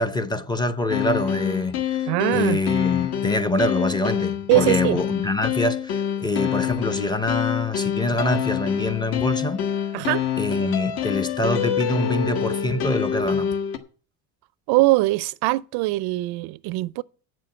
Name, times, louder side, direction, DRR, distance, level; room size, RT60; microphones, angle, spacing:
voice 1, 0.0-2.0 2.3-9.6 10.4-13.5, left 2 dB, 10° left, 0.6 m, -25 dB
sound 1, 0.9-13.8, left 9 dB, 55° left, 1.5 m, -26 dB
voice 2, 2.1-2.6 4.5-5.0 9.9-10.2 14.7-17.0, right 20 dB, 55° right, 0.5 m, -21 dB
8.3 x 7.6 x 8.6 m
cardioid pair, 125°, 46 cm